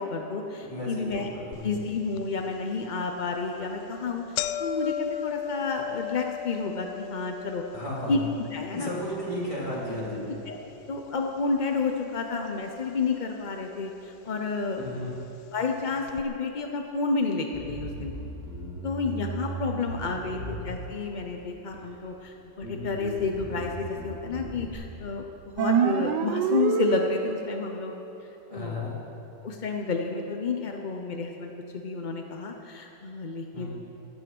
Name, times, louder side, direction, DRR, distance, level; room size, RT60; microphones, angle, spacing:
voice 1, 0.0-1.3 1.6-7.6 8.1-8.2 8.5-8.9 10.5-10.6 10.9-14.8 15.5-18.1 18.8-27.9 28.5-28.9 29.4-33.7, left 4 dB, 45° left, 3 dB, 0.5 m, -30 dB
voice 2, 0.7-1.7 7.7-8.2 8.7-10.3 14.8-15.2 20.3-20.5 28.5-28.9 33.5-33.7, left 1 dB, 15° left, -6 dB, 3.3 m, -34 dB
sound 1, 1.5-1.6 2.2-2.3 3.1-3.3 3.6-3.7 4.0-12.2 12.5-13.2 14.0-14.1 15.0-15.1 15.4-15.5 16.1-16.2, left 11 dB, 70° left, 1.0 m, -37 dB
Bass guitar, 17.5-21.1 21.7-22.3 22.6-24.7, right 2 dB, 5° right, 3.1 m, -38 dB
sound 2, 25.6-27.6, right 7 dB, 75° right, 1.3 m, -25 dB
15.5 x 12.5 x 6.1 m, 3.0 s
omnidirectional pair, 2.0 m